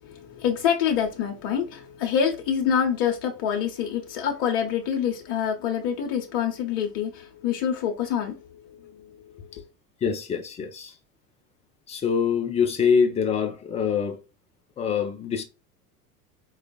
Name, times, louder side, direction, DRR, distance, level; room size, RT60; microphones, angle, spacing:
voice 1, 0.0-9.5, left 8 dB, 50° left, 0.9 m, -26 dB
voice 2, 10.0-10.9 11.9-14.2 14.8-15.4, left 6 dB, 15° left, 0.4 m, -24 dB
4.7 x 2.4 x 2.3 m
figure-of-eight pair, 80°, 47 cm